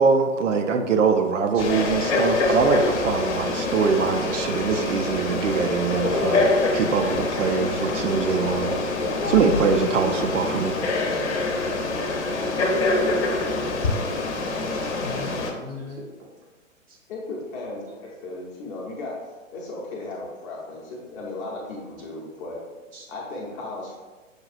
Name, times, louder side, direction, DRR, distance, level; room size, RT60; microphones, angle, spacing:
voice 1, 0.0-6.5 6.7-8.7 9.2-10.8, right 5 dB, 70° right, 6 dB, 0.5 m, -23 dB
Frog, 1.6-15.5, left 2 dB, 60° left, 0.8 m, -25 dB
sound 1, 6.1-7.0 9.0-10.6 12.3-12.7 13.0-13.3 13.7-13.9, left 3 dB, 90° left, 0.7 m, -32 dB
voice 2, 14.7-16.3 16.9-17.0 17.8-18.0 22.9-23.1, left 3 dB, 20° right, -2 dB, 0.5 m, -39 dB
voice 3, 17.1-19.2 19.5-22.6 23.1-24.0, left 2 dB, 25° left, -3 dB, 0.7 m, -35 dB
6.3 x 2.3 x 2.4 m, 1.3 s
figure-of-eight pair, 125°, 39 cm